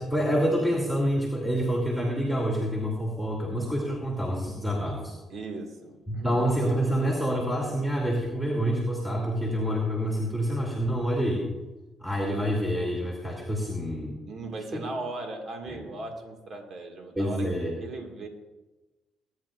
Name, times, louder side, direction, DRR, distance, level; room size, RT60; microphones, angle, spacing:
voice 1, 0.0-5.1 6.1-11.5 12.0-14.1 15.7-15.8 17.2-17.7, equal, 10° right, -2 dB, 2.8 m, -27 dB
voice 2, 5.3-6.4 14.3-17.5 17.8-18.3, right 2 dB, 55° right, 3 dB, 2.1 m, -38 dB
19.5 x 10.5 x 2.6 m, 1.1 s
supercardioid pair, 70°, 0 cm